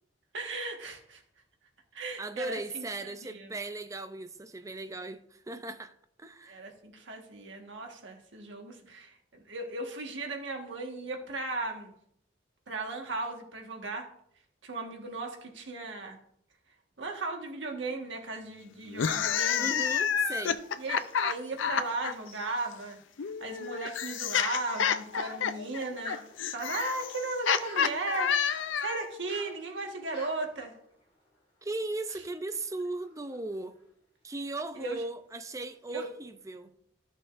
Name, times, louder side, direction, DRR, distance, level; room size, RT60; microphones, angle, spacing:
voice 1, 0.3-1.2 1.9-3.5 6.5-11.9 12.7-14.1 14.6-16.2 17.0-19.7 20.8-23.0 23.4-26.2 26.5-28.3 28.8-30.7 34.7-35.0 35.9-36.1, right 3 dB, 75° right, 1.4 m, -36 dB
voice 2, 2.2-5.9 6.2-6.6 19.6-20.6 31.6-33.8 34.2-36.7, right 2 dB, 15° right, 0.4 m, -37 dB
sound 1, 18.9-22.1 23.2-29.1, left 7 dB, 80° left, 0.4 m, -29 dB
sound 2, 20.1-22.0 22.2-22.6 23.1-23.2 23.8-23.9 25.4-32.1 32.5-34.1 34.6-34.9 35.3-36.1, left 1 dB, 30° left, 3.1 m, -52 dB
13.5 x 6.4 x 2.5 m
head